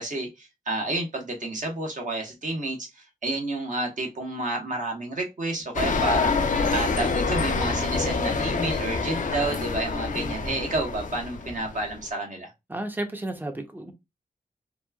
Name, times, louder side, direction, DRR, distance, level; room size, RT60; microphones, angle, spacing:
voice 1, 0.0-12.5, right 2 dB, 55° right, 1.0 m, -30 dB
sound 1, 5.7-12.0, left 4 dB, 55° left, 0.5 m, -27 dB
voice 2, 10.2-10.6 12.7-13.9, right 1 dB, 10° right, 0.6 m, -33 dB
3.0 x 2.2 x 2.2 m
wide cardioid pair, 85°, 16 cm